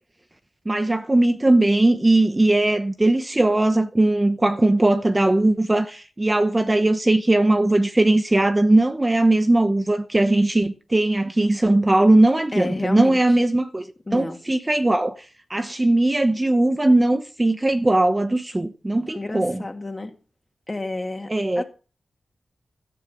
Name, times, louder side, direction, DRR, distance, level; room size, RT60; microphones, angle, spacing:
voice 1, 0.7-15.2 15.5-19.6 21.3-21.6, right 2 dB, 20° right, 1.0 m, -19 dB
voice 2, 12.5-13.2 14.1-14.4 19.1-20.1 20.7-21.6, left 2 dB, 25° left, 2.6 m, -30 dB
13.5 x 8.9 x 5.9 m
wide cardioid pair, 90°, 0 cm